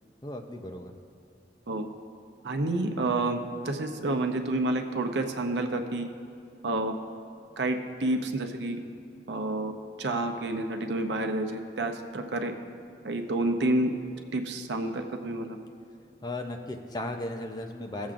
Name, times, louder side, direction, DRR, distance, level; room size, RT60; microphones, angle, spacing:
voice 1, 0.2-0.9 16.2-18.1, left 1 dB, 25° left, 4 dB, 0.5 m, -36 dB
voice 2, 2.4-6.1 6.6-6.9 7.6-8.8 9.3-9.7 10.0-12.5 13.0-13.9 14.3-15.6, right 2 dB, 85° right, 5 dB, 0.7 m, -29 dB
16.5 x 7.1 x 2.5 m, 2.6 s
head